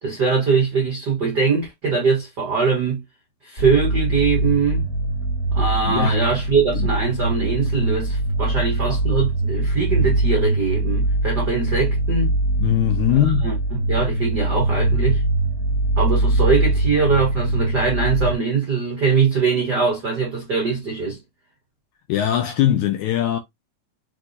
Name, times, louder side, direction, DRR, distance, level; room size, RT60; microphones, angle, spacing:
voice 1, 0.0-3.0 3.4-4.8 5.5-12.3 13.1-15.2 16.0-21.2, right 5 dB, 75° right, 0.9 m, -22 dB
sound 1, 3.6-18.3, right 2 dB, 40° left, 1.1 m, -22 dB
voice 2, 5.8-6.2 6.7-6.9 12.6-13.5 22.1-23.4, left 12 dB, 85° left, 1.7 m, -20 dB
6.3 x 3.0 x 2.7 m
omnidirectional pair, 4.0 m